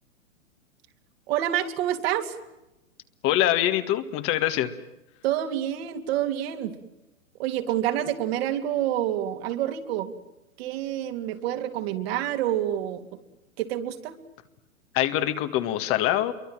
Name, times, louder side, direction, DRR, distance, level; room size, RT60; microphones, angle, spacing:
voice 1, 1.3-2.3 5.2-6.7 7.4-10.1 10.6-13.0 13.6-14.2, right 11 dB, 45° right, 7 dB, 2.9 m, -27 dB
voice 2, 3.2-4.7 14.9-16.3, left 13 dB, 35° left, 9 dB, 1.8 m, -24 dB
28.0 x 23.5 x 7.5 m, 0.98 s
hypercardioid pair, 125°, 40 cm